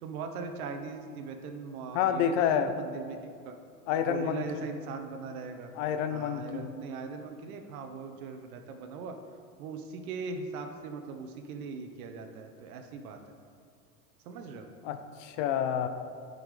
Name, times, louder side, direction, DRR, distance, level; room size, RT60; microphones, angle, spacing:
voice 1, 0.0-3.5 4.1-5.7 6.1-9.2 9.6-13.2 14.2-14.7, right 4 dB, 65° right, 6 dB, 1.0 m, -40 dB
voice 2, 1.9-2.7 3.9-4.7 5.7-6.7 14.8-15.9, left 8 dB, 50° left, 9 dB, 0.7 m, -29 dB
10.5 x 5.3 x 3.3 m, 2.2 s
hypercardioid pair, 95°, 48 cm